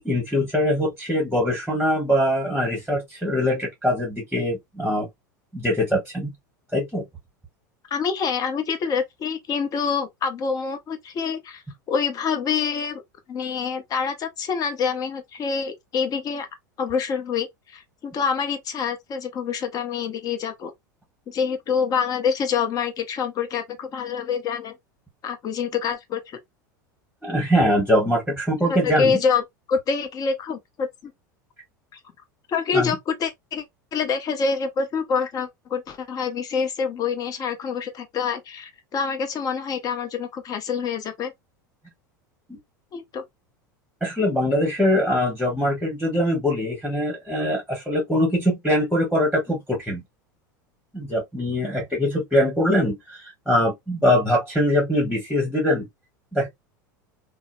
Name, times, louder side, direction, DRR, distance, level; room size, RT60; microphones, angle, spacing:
voice 1, 0.0-5.1 5.5-6.3 6.7-7.0 27.2-29.2 32.7-32.9 42.5-42.6 44.0-50.0 50.9-55.9 56.3-56.5, left 1 dB, ahead, 1.1 m, -22 dB
voice 2, 7.9-13.0 13.3-16.5 16.8-20.7 21.3-24.8 25.2-26.4 28.7-29.4 29.7-31.1 31.9-32.0 32.5-33.6 33.9-41.3 42.9-43.2, left 6 dB, 35° left, 0.8 m, -26 dB
2.7 x 2.0 x 2.5 m
hypercardioid pair, 90°, 10 cm